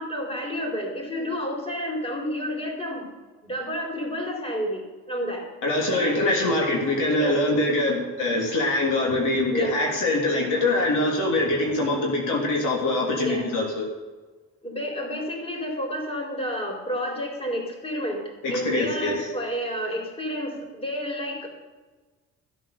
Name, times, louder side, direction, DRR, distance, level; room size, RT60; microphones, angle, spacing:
voice 1, 0.0-3.1 3.4-5.4 5.8-6.5 6.8-7.4 9.5-9.7 13.2-13.5 14.6-18.2 18.5-21.5, equal, 20° left, 0 dB, 4.2 m, -30 dB
voice 2, 5.6-13.9 18.4-19.3, left 2 dB, 85° left, -1 dB, 3.2 m, -24 dB
15.0 x 7.9 x 6.8 m, 1.3 s
cardioid pair, 90°, 30 cm